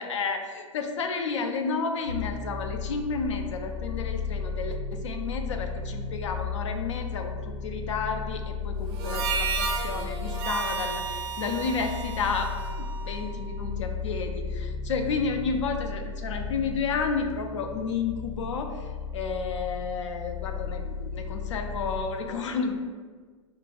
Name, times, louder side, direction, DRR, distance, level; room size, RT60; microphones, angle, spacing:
voice 1, 0.0-22.7, left 5 dB, 60° left, 5 dB, 0.5 m, -31 dB
sound 1, 2.0-22.0, left 5 dB, 90° left, 1.1 m, -34 dB
Harmonica, 8.9-13.5, right 5 dB, 50° right, 0.5 m, -33 dB
5.1 x 2.1 x 2.3 m, 1.5 s
figure-of-eight pair, 95°, 17 cm